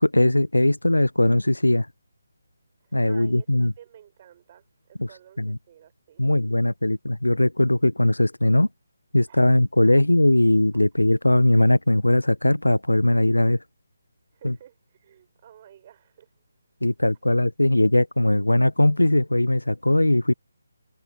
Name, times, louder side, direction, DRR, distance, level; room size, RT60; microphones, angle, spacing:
voice 1, 0.0-1.9 2.9-3.7 5.0-5.1 5.4-5.6 6.2-8.7 9.1-13.6 14.4-14.5 16.8-20.3, left 1 dB, 80° left, 0.9 m, -20 dB
voice 2, 2.8-6.3 9.3-9.4 9.8-10.0 14.3-16.3, right 10 dB, 30° right, 7.0 m, -52 dB
figure-of-eight pair, 150°, 0 cm